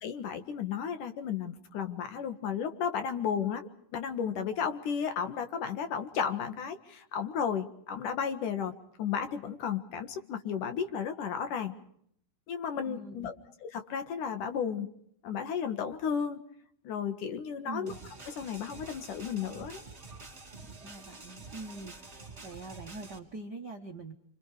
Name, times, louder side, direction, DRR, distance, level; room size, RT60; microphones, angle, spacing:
voice 1, 0.0-8.7 9.0-11.7 12.5-13.3 13.6-14.9 15.2-16.4 16.8-17.9 18.3-19.8, left 7 dB, 65° left, 8 dB, 3.1 m, -33 dB
voice 2, 12.8-13.3 17.6-18.0 20.8-24.1, right 2 dB, 50° right, 2 dB, 1.2 m, -44 dB
sound 1, 17.9-23.2, right 3 dB, 20° right, 3.7 m, -48 dB
29.0 x 25.5 x 4.9 m, 0.68 s
omnidirectional pair, 4.0 m